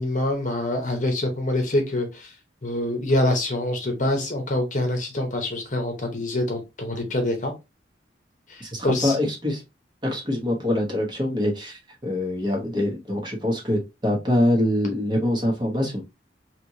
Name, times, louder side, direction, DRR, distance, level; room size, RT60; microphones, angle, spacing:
voice 1, 0.0-2.3 2.6-7.5 8.5-9.1, left 1 dB, 40° left, 0.9 m, -25 dB
voice 2, 8.6-9.6 10.0-16.0, left 1 dB, 25° right, 1.1 m, -24 dB
3.4 x 2.9 x 2.7 m
head